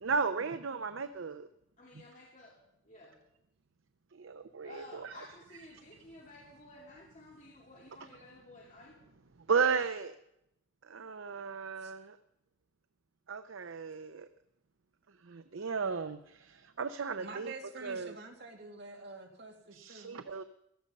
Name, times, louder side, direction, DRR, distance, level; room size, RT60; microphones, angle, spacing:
voice 1, 0.0-1.5 4.2-5.1 9.5-10.2 10.9-12.2 13.3-14.3 15.3-17.5 17.8-18.1 19.7-20.4, right 5 dB, 90° right, 10 dB, 0.7 m, -34 dB
voice 2, 1.8-2.6 2.8-3.2 4.6-9.0, left 2 dB, 40° left, -3 dB, 2.6 m, -53 dB
voice 3, 17.2-20.2, right 3 dB, 55° right, 2 dB, 2.7 m, -47 dB
16.5 x 13.5 x 5.4 m, 0.80 s
head